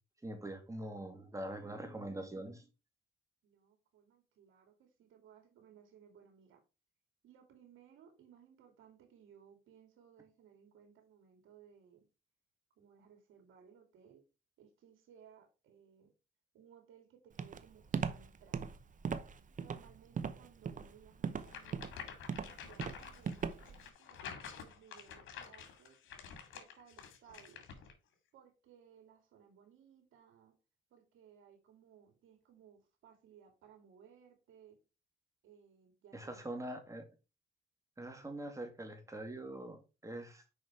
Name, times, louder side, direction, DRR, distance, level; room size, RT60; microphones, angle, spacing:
voice 1, 0.2-2.6 36.1-37.0 38.0-40.4, right 1 dB, 15° right, 2.2 m, -43 dB
voice 2, 3.4-6.6 7.2-12.1 12.8-14.3 14.6-16.1 16.5-18.7 19.6-21.9 22.4-26.0 26.5-27.6 28.3-30.6 30.9-34.8 35.4-36.5, right 8 dB, 85° right, 2.7 m, -62 dB
Walk footsteps, 17.4-23.8, right 6 dB, 40° right, 0.8 m, -39 dB
sound 1, 21.5-27.9, left 7 dB, 85° left, 2.0 m, -49 dB
6.6 x 5.1 x 4.7 m
cardioid pair, 90°, 20 cm